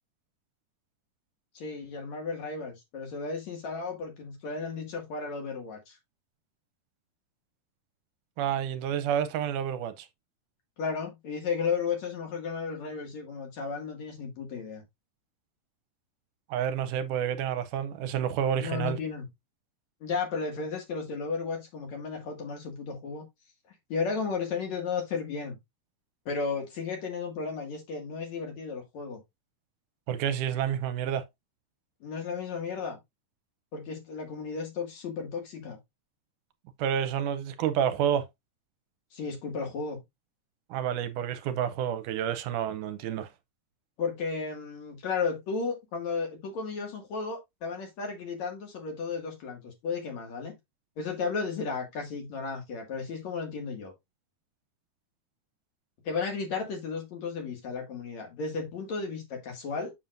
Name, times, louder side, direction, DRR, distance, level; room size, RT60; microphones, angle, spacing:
voice 1, 1.5-6.0 10.8-14.8 18.6-19.3 20.0-23.2 23.9-25.6 26.3-29.2 32.0-33.0 33.7-35.8 39.1-40.0 44.0-50.5 51.0-53.9 56.0-59.9, left 5 dB, 60° left, 3.2 m, -34 dB
voice 2, 8.4-10.1 16.5-19.0 30.1-31.2 36.8-38.2 40.7-43.3, right 9 dB, 80° right, 2.2 m, -29 dB
7.2 x 7.1 x 2.6 m
omnidirectional pair, 3.7 m